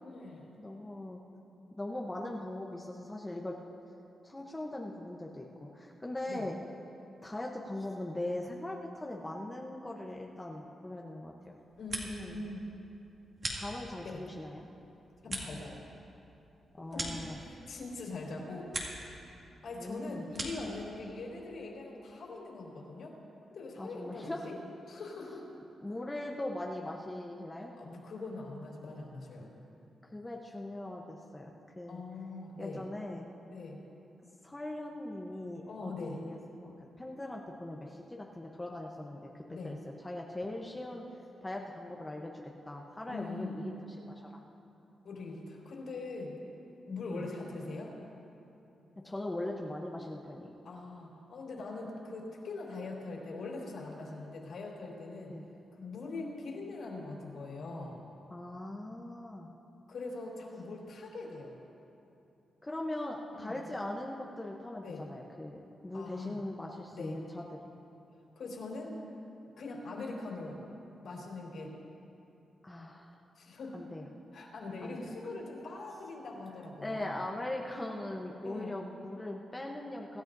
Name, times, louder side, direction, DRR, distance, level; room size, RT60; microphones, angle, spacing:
voice 1, 0.0-0.5 6.3-6.4 11.8-12.7 14.0-14.2 15.2-15.8 16.9-18.7 19.6-23.1 23.5-24.6 24.9-25.4 27.8-29.5 31.9-32.8 33.5-33.8 35.7-36.2 39.5-39.8 43.1-43.6 45.0-46.4 46.9-47.9 50.6-55.3 55.7-58.0 59.9-61.5 63.3-63.6 64.8-65.0 65.9-66.4 66.9-67.2 68.4-69.0 69.6-70.7 71.0-71.7 73.4-73.8 74.3-77.2 78.4-78.8, left 3 dB, 65° left, -4 dB, 4.0 m, -42 dB
voice 2, 0.6-1.2 1.7-3.6 4.2-6.6 7.2-11.6 12.2-12.4 13.5-14.7 16.7-17.4 19.8-20.3 23.8-24.5 25.8-27.7 30.0-32.0 32.6-33.3 34.4-39.3 39.6-39.8 40.0-41.0 41.4-43.7 44.1-44.4 47.1-47.3 49.0-50.5 55.3-55.4 58.3-59.5 62.6-67.7 72.6-73.2 73.7-74.1 74.8-75.1 76.8-80.2, left 1 dB, 15° left, 0 dB, 0.9 m, -40 dB
sound 1, 11.6-12.4 12.7-14.2 14.6-17.9 18.2-19.1 19.4-20.8, right 2 dB, 40° right, 2.2 m, -42 dB
25.5 x 13.0 x 2.7 m, 2.8 s
wide cardioid pair, 130°, 0 cm